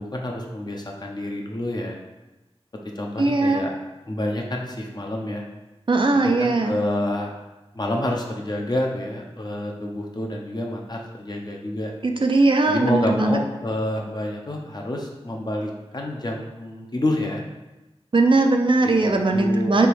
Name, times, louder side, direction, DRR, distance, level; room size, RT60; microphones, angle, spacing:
voice 1, 0.0-2.0 3.0-3.7 4.1-5.4 6.2-7.3 7.7-11.9 12.7-17.4 18.8-19.7, left 1 dB, 40° left, 0 dB, 0.7 m, -28 dB
voice 2, 3.2-3.6 5.9-6.8 12.0-13.4 18.1-19.9, right 2 dB, 50° right, 3 dB, 0.4 m, -19 dB
3.4 x 3.0 x 4.6 m, 1.0 s
wide cardioid pair, 60°, 11 cm